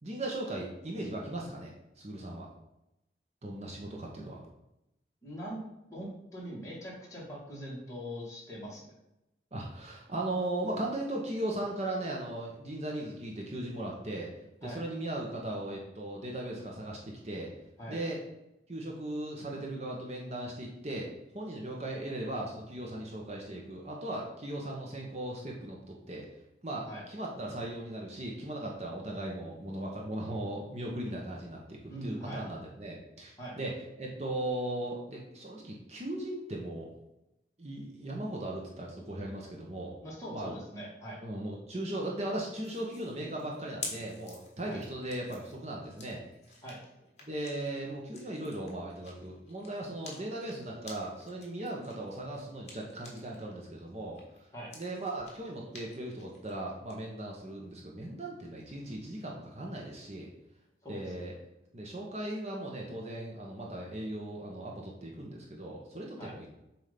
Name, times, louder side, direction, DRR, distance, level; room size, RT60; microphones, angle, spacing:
voice 1, 0.0-2.5 3.4-4.4 9.5-14.3 14.6-17.5 17.9-18.2 18.7-21.1 21.3-26.2 26.6-36.9 37.6-40.0 40.3-40.5 41.2-46.2 47.2-54.2 54.7-60.3 60.9-61.4 61.7-66.5, right 1 dB, 35° right, -2 dB, 0.9 m, -38 dB
voice 2, 5.2-5.6 5.9-8.9 14.6-14.8 17.8-18.0 26.9-27.0 31.9-32.5 33.4-33.5 40.0-41.2 44.7-44.8 46.6-46.8 54.5-54.7 60.8-61.1 66.2-66.3, equal, 15° left, -5 dB, 1.8 m, -42 dB
sound 1, 42.6-53.4 53.8-57.0, left 3 dB, 40° left, 1.3 m, -49 dB
7.4 x 2.7 x 5.1 m, 0.88 s
head